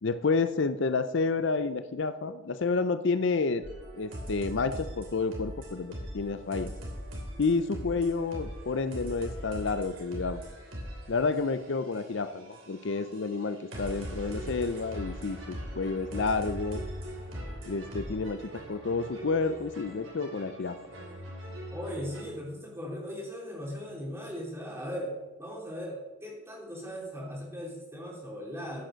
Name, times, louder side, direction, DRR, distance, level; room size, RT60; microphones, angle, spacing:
voice 1, 0.0-3.6 3.9-6.7 7.4-10.4 11.1-16.8 17.7-20.8, left 4 dB, 60° left, 11 dB, 0.5 m, -30 dB
sound 1, 3.6-22.2, equal, 65° right, 3.2 m, -41 dB
voice 2, 21.7-28.8, equal, 10° right, -2 dB, 3.2 m, -38 dB
14.5 x 6.5 x 6.3 m, 1.1 s
head